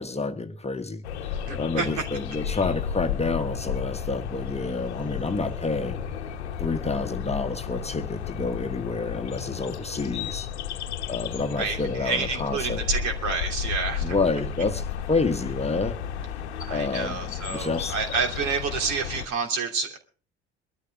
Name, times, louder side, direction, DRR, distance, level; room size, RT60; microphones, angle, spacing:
voice 1, 0.0-6.0 6.6-10.5 11.1-12.8 14.0-16.0 16.7-17.9, left 3 dB, 20° left, 8 dB, 1.3 m, -29 dB
sound 1, 1.0-19.3, left 8 dB, 75° left, 1.1 m, -33 dB
voice 2, 1.5-1.9 11.6-14.2 16.6-20.0, right 5 dB, 60° right, 5 dB, 2.8 m, -29 dB
23.0 x 13.0 x 3.5 m, 0.38 s
figure-of-eight pair, 50°, 33 cm